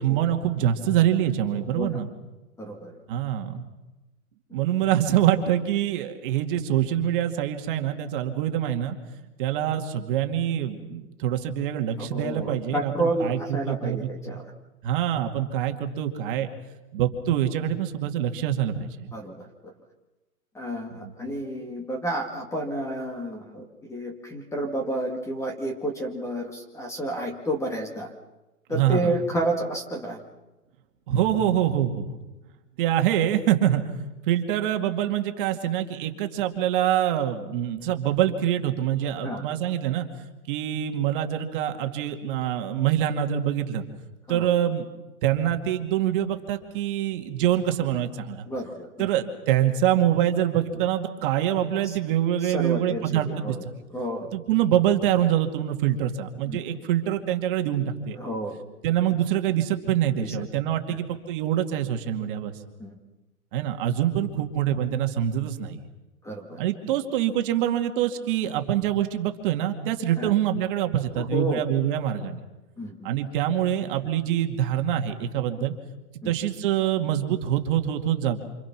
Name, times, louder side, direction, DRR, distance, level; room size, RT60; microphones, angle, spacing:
voice 1, 0.0-2.1 3.1-3.7 4.5-9.0 9.4-14.4 14.8-16.5 16.9-19.1 20.9-21.1 28.7-29.2 31.1-32.1 32.8-33.9 34.3-40.1 40.5-43.8 44.3-44.9 45.2-48.5 49.0-53.6 54.3-58.2 58.8-62.5 63.5-65.8 66.6-72.4 73.0-75.7 76.3-78.4, right 11 dB, 35° right, 4 dB, 2.2 m, -25 dB
voice 2, 2.6-2.9 4.5-4.6 12.0-14.5 19.1-19.7 20.5-28.1 28.7-30.2 39.2-39.4 44.3-44.5 48.5-49.1 51.8-52.0 52.4-53.6 53.9-54.3 56.5-56.6 58.2-58.6 60.2-60.4 60.9-61.0 62.8-63.0 66.2-66.6 70.2-70.3 71.1-71.6 72.8-73.1 76.2-76.3, right 1 dB, 5° left, 3 dB, 2.0 m, -31 dB
28.0 x 27.0 x 6.1 m, 1.1 s
hypercardioid pair, 145°, 42 cm